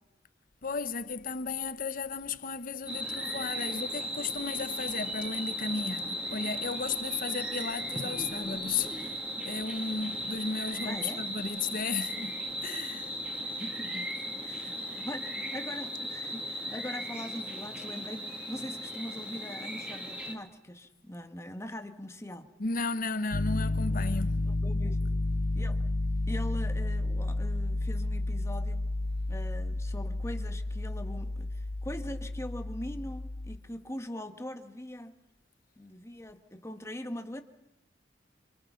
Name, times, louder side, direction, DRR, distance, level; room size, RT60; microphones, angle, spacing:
voice 1, 0.6-9.2 9.4-12.4 12.6-13.1 22.6-24.5, left 4 dB, 50° left, 1.0 m, -34 dB
sound 1, 2.9-20.3, equal, 5° right, 2.7 m, -37 dB
voice 2, 10.8-11.3 13.4-22.5 23.9-24.0 24.4-25.1 25.5-25.9 26.3-28.9 29.3-35.1 35.8-37.4, left 1 dB, 15° left, 1.7 m, -42 dB
Piano, 23.3-33.6, left 2 dB, 75° left, 1.3 m, -31 dB
27.0 x 26.0 x 5.8 m
head